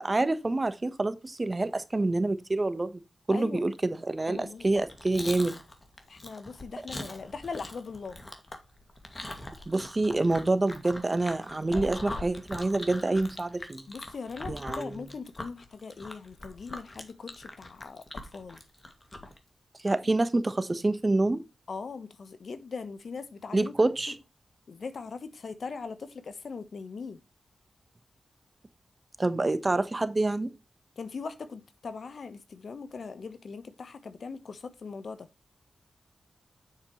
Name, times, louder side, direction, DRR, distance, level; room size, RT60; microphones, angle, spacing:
voice 1, 0.0-3.0 3.3-5.6 9.7-13.8 14.5-15.0 19.8-21.4 23.5-24.2 29.2-30.5, right 2 dB, 35° right, 1.2 m, -27 dB
voice 2, 3.3-3.6 4.3-4.7 6.1-8.2 13.9-18.0 18.3-18.6 19.9-20.2 21.7-23.7 24.7-27.2 31.0-35.3, left 5 dB, 70° left, 1.1 m, -40 dB
Chewing mastication, 4.6-19.4, left 1 dB, 30° left, 2.2 m, -42 dB
8.0 x 6.9 x 3.1 m
cardioid pair, 55°, 0 cm